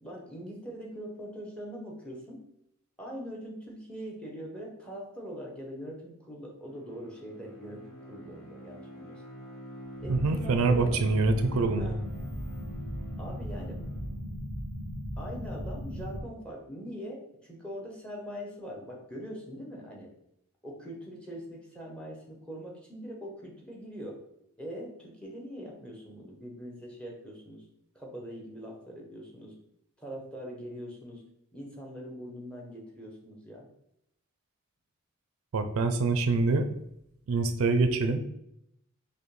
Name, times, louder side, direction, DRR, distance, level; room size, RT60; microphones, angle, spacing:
voice 1, 0.0-2.4 3.0-7.8 8.1-9.2 10.0-11.0 11.8-12.0 13.2-13.8 15.2-20.1 20.6-24.2 24.6-27.6 27.9-29.5 30.0-31.2 31.5-33.7, equal, 5° left, -1 dB, 0.8 m, -42 dB
Bowed string instrument, 6.6-14.4, equal, 75° left, 1.0 m, -47 dB
sound 1, 10.0-16.2, equal, 35° left, 1.4 m, -37 dB
voice 2, 10.1-12.0 35.5-36.7 37.3-38.2, right 3 dB, 75° right, 8 dB, 0.4 m, -25 dB
5.3 x 2.2 x 3.1 m, 0.78 s
head